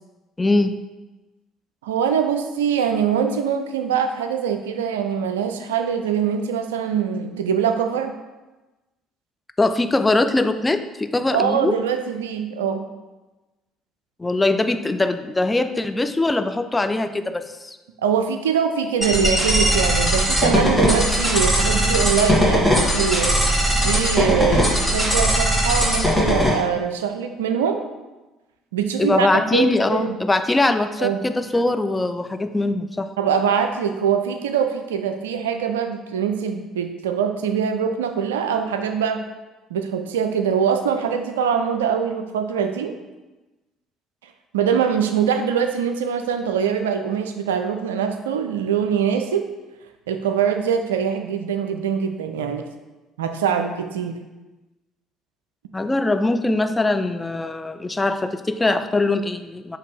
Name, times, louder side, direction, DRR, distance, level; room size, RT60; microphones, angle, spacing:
voice 1, 0.4-0.8 9.6-11.8 14.2-17.8 29.0-33.1 55.7-59.8, left 2 dB, 15° left, 9 dB, 0.3 m, -22 dB
voice 2, 1.8-8.1 11.3-12.9 18.0-23.4 23.8-27.8 28.7-30.2 31.0-31.2 33.2-39.2 39.7-43.0 44.5-49.4 50.1-52.7 53.2-54.2, right 7 dB, 75° right, 7 dB, 0.3 m, -23 dB
sound 1, 19.0-26.5, equal, ahead, 1.4 m, -19 dB
5.6 x 2.7 x 3.4 m, 1.1 s
figure-of-eight pair, 50°, 0 cm